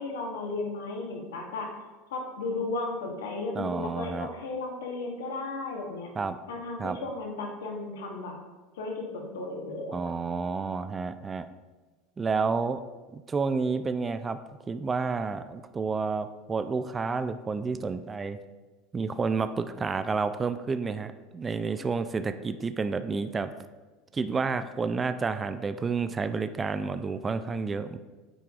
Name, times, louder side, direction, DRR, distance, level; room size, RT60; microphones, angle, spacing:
voice 1, 0.0-1.8 2.1-6.2 6.5-8.4 8.7-10.1, left 3 dB, 80° left, 1 dB, 1.0 m, -35 dB
voice 2, 3.6-4.3 6.2-6.4 6.8-7.0 9.9-11.5 12.2-12.8 13.1-14.4 14.7-18.4 18.9-23.5 24.1-28.0, right 4 dB, 25° right, 10 dB, 0.3 m, -30 dB
8.9 x 4.6 x 2.4 m, 1.3 s
hypercardioid pair, 90°, 0 cm